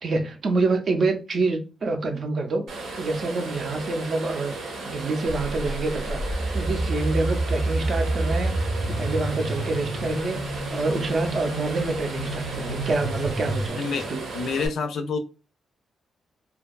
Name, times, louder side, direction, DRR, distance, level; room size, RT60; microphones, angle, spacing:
voice 1, 0.0-10.5 10.7-14.3, right 3 dB, 45° right, 0.4 m, -27 dB
sound 1, 2.7-14.7, right 3 dB, 85° right, 0.8 m, -35 dB
sound 2, 5.3-13.7, right 1 dB, 15° left, 0.5 m, -29 dB
voice 2, 13.7-14.1 14.3-15.2, left 5 dB, 75° left, 0.4 m, -27 dB
2.6 x 2.3 x 2.2 m
wide cardioid pair, 160°, 0 cm